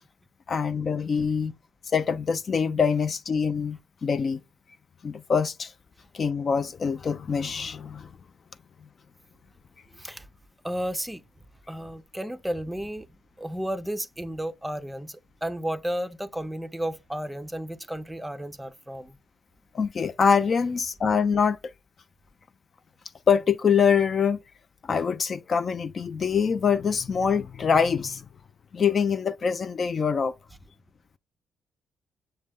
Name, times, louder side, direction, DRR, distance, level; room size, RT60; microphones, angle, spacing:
voice 1, 0.5-1.5 1.9-4.4 5.0-5.7 6.1-8.1 19.7-21.6 23.3-24.4 24.9-28.2 28.7-30.3, left 6 dB, 45° left, 0.4 m, -24 dB
voice 2, 9.9-10.3 10.6-11.2 11.7-13.1 13.4-19.2, equal, 5° right, 0.5 m, -33 dB
6.2 x 2.2 x 3.5 m
cardioid pair, 90°, 0 cm